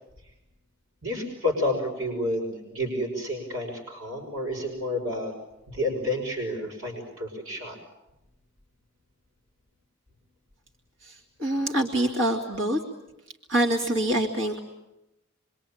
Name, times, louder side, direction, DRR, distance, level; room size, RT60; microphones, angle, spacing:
voice 1, 1.0-5.3 5.7-7.8, left 1 dB, 90° right, 0 dB, 6.0 m, -30 dB
voice 2, 11.0-12.8 13.5-14.6, right 1 dB, 70° right, 1 dB, 2.9 m, -25 dB
26.5 x 24.5 x 8.8 m, 0.92 s
head